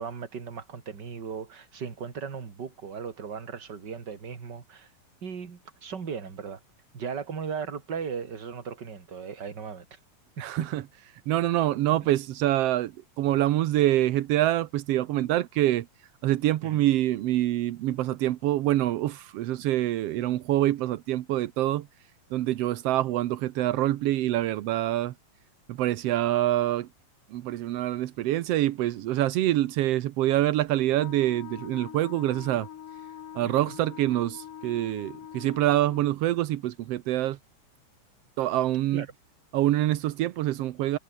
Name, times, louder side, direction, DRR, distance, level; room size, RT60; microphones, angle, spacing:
voice 1, 0.0-4.9 5.2-6.6 6.9-10.0 16.6-16.8 33.4-33.5 38.9-39.1, right 6 dB, 35° right, 2.6 m, -37 dB
voice 2, 10.4-10.8 11.3-12.9 13.2-15.9 16.2-21.9 22.3-25.1 25.7-26.9 27.3-32.7 33.3-37.4 38.4-39.0 39.5-41.0, right 14 dB, 80° right, 1.4 m, -25 dB
Wind instrument woodwind instrument, 30.9-36.1, left 10 dB, 70° left, 3.5 m, -43 dB
omnidirectional pair, 3.9 m